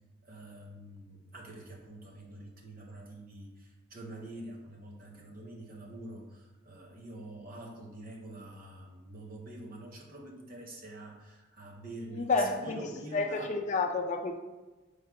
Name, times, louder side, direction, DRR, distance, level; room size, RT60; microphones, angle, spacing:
voice 1, 0.2-13.6, right 1 dB, 50° right, 0 dB, 0.8 m, -46 dB
voice 2, 12.1-12.9 13.1-14.4, left 3 dB, 40° left, 4 dB, 0.4 m, -30 dB
4.7 x 2.1 x 4.7 m, 1.2 s
head